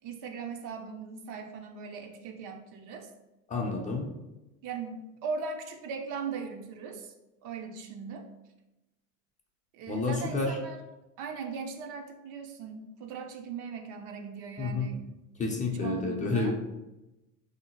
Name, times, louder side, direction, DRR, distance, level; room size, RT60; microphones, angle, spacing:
voice 1, 0.0-3.1 4.6-7.1 7.4-8.3 9.7-10.8 11.2-15.1 15.8-16.5, right 5 dB, 50° right, 5 dB, 0.5 m, -39 dB
voice 2, 3.5-4.1 9.9-10.6 14.6-14.9 15.4-16.5, left 3 dB, 20° left, 1 dB, 0.5 m, -29 dB
3.4 x 2.8 x 2.8 m, 0.98 s
supercardioid pair, 100°, 40 cm